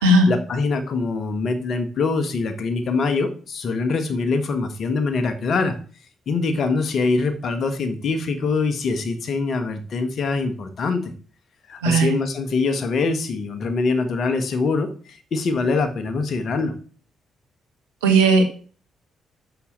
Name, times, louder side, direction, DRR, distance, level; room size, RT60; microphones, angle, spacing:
voice 1, 0.3-5.8 6.3-11.1 11.7-16.7, left 4 dB, 55° left, 9 dB, 1.7 m, -24 dB
voice 2, 11.8-12.1 18.0-18.5, right 2 dB, 85° right, 4 dB, 1.6 m, -16 dB
6.7 x 6.5 x 7.3 m, 0.42 s
hypercardioid pair, 45°, 0 cm